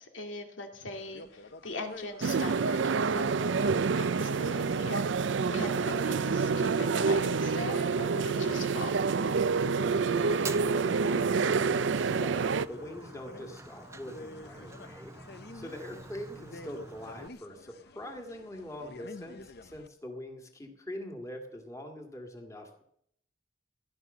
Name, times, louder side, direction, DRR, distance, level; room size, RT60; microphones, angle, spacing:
voice 1, 0.0-5.1 5.5-8.9 15.9-16.1, left 2 dB, 85° left, 4 dB, 2.4 m, -41 dB
sound 1, 0.9-19.9, left 2 dB, 55° left, 0.7 m, -47 dB
sound 2, 2.2-12.7, right 5 dB, 75° right, 0.5 m, -28 dB
voice 2, 10.1-15.2 15.5-22.8, left 1 dB, 15° left, 3 dB, 2.0 m, -43 dB
Fire, 10.3-17.3, right 3 dB, 15° right, 0.5 m, -47 dB
16.0 x 11.0 x 6.7 m, 0.72 s
head